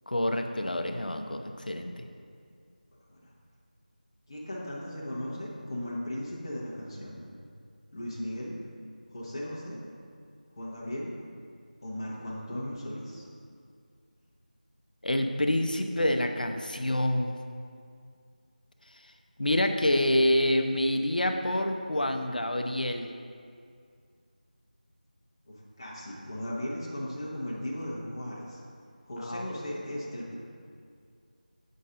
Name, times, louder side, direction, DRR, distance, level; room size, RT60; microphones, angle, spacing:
voice 1, 0.1-2.1 15.0-17.3 19.4-23.1 29.2-29.5, left 1 dB, 65° left, 5 dB, 0.6 m, -27 dB
voice 2, 4.3-7.2 7.9-8.5 9.1-9.8 10.6-11.1 11.8-13.2 25.5-28.6 29.0-30.3, left 1 dB, 25° left, -5 dB, 1.0 m, -37 dB
7.4 x 5.3 x 3.8 m, 2.2 s
figure-of-eight pair, 170°, 5 cm